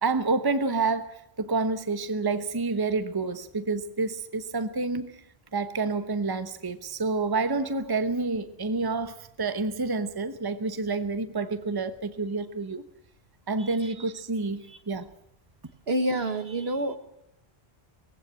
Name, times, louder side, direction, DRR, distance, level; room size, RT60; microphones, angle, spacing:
voice 1, 0.0-5.1 5.5-12.8 13.5-15.1, right 3 dB, 20° right, 11 dB, 1.0 m, -28 dB
voice 2, 13.6-13.9 14.7-14.8 15.9-17.0, right 1 dB, 70° right, 9 dB, 1.7 m, -28 dB
20.5 x 16.0 x 9.0 m, 0.81 s
omnidirectional pair, 1.1 m